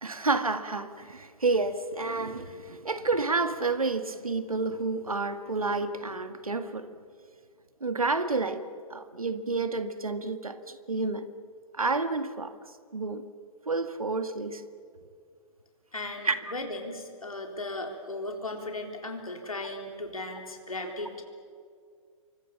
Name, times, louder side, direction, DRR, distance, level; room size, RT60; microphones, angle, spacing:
voice 1, 0.0-6.9 7.8-11.3 11.7-12.5 12.9-13.2 13.7-14.6 16.2-16.4, right 3 dB, 80° right, 1.9 m, -30 dB
voice 2, 15.9-21.2, left 2 dB, 80° left, 3.8 m, -36 dB
28.5 x 24.5 x 7.3 m
figure-of-eight pair, 115°, 18 cm